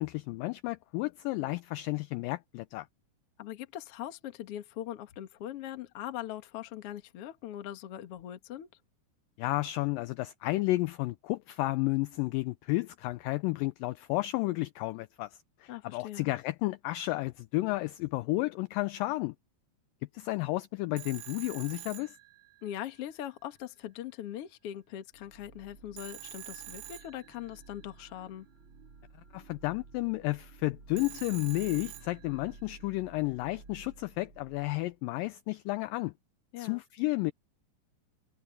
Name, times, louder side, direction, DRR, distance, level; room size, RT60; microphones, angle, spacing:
voice 1, 0.0-2.9 9.4-15.3 15.6-19.4 20.1-22.2 29.3-36.1 36.6-37.3, left 20 dB, 90° left, 1.9 m, -32 dB
voice 2, 3.4-8.7 15.7-16.3 22.6-28.5 36.5-36.8, left 12 dB, 55° left, 1.8 m, -41 dB
Telephone, 21.0-22.9 26.0-27.8 31.0-32.6, right 15 dB, 80° right, 2.8 m, -47 dB
sound 1, 25.1-35.0, right 4 dB, 35° right, 3.1 m, -54 dB
omnidirectional pair, 4.5 m